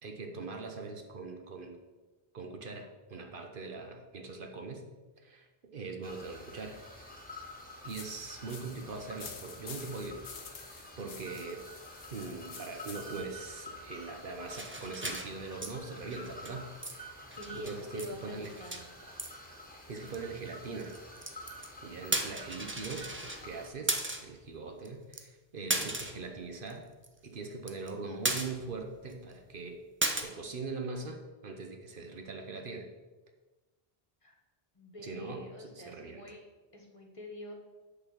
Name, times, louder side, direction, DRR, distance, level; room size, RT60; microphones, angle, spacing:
voice 1, 0.0-1.8 2.3-4.8 5.2-6.8 7.3-7.4 7.8-10.2 10.6-11.6 12.1-16.7 17.1-18.7 19.9-21.0 21.8-26.9 27.2-29.8 30.1-32.9 35.0-36.2, right 3 dB, 60° right, 4 dB, 1.1 m, -42 dB
sound 1, 6.0-23.7, equal, 10° left, 1.6 m, -49 dB
sound 2, 7.9-13.4, left 6 dB, 70° left, 1.1 m, -49 dB
sound 3, 14.5-15.7 16.0-16.6 16.8-17.0 17.2-18.1 18.4-18.8 19.2-19.3 20.1-20.2 20.8-21.7 22.0-23.4 23.9-24.3 24.8-24.9 25.1-25.2 25.7-26.3 26.7-26.8 27.0-27.1 27.4-27.9 28.2-28.8 29.1-29.2 30.0-30.2, right 2 dB, 15° right, 0.6 m, -35 dB
voice 2, 17.4-18.8 34.2-34.4 34.7-36.4 36.7-37.5, equal, 35° left, 1 dB, 1.3 m, -45 dB
8.4 x 4.2 x 7.2 m, 1.2 s
omnidirectional pair, 1.0 m